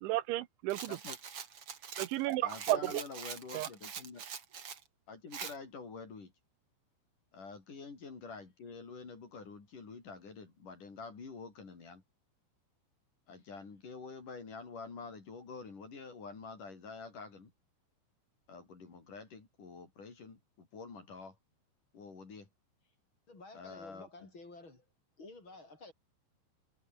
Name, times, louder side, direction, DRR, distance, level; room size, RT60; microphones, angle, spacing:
voice 1, 0.0-1.0 2.0-2.9 3.5-3.7, right 16 dB, 80° right, 3.3 m, -33 dB
Rattle, 0.7-4.8 5.3-5.6, right 7 dB, 40° right, 2.3 m, -44 dB
voice 2, 2.4-4.2 5.1-6.3 7.3-12.0 13.3-17.5 18.5-21.4 21.9-22.5 23.5-24.3, left 4 dB, 45° left, 6.2 m, -47 dB
voice 3, 23.3-24.8 25.2-25.9, left 2 dB, 25° left, 6.3 m, -52 dB
omnidirectional pair, 5.4 m